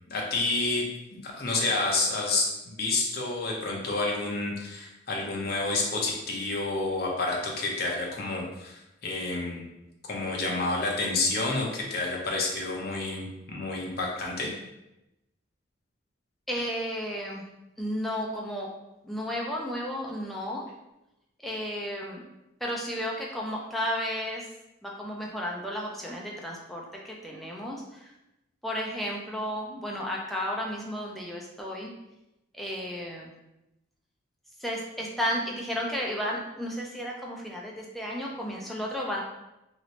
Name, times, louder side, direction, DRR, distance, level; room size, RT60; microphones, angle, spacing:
voice 1, 0.1-0.9 1.1-9.6 10.1-14.5, left 3 dB, 50° left, -1 dB, 0.7 m, -29 dB
voice 2, 16.5-17.4 17.8-18.7 19.0-20.7 21.4-22.2 22.6-24.5 24.8-28.1 28.6-31.9 32.5-33.3 34.6-39.2, equal, ahead, -3 dB, 0.4 m, -33 dB
3.0 x 2.9 x 2.8 m, 0.92 s
head